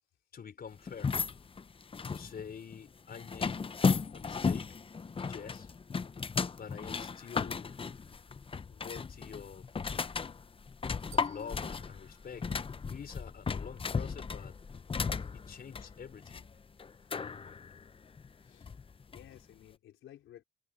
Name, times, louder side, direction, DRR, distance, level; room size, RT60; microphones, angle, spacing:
voice 1, 0.3-1.1 2.1-3.7 4.1-4.7 5.1-5.7 6.5-7.7 8.7-9.7 11.1-12.5 12.9-14.6 15.3-16.5 17.5-17.6, left 7 dB, 50° left, 4.9 m, -47 dB
sound 1, 0.9-19.4, left 5 dB, 25° left, 0.8 m, -35 dB
sound 2, 11.1-13.4, right 12 dB, 85° right, 2.5 m, -61 dB
voice 2, 19.1-20.4, left 12 dB, 80° left, 4.1 m, -55 dB
cardioid pair, 90°, 20 cm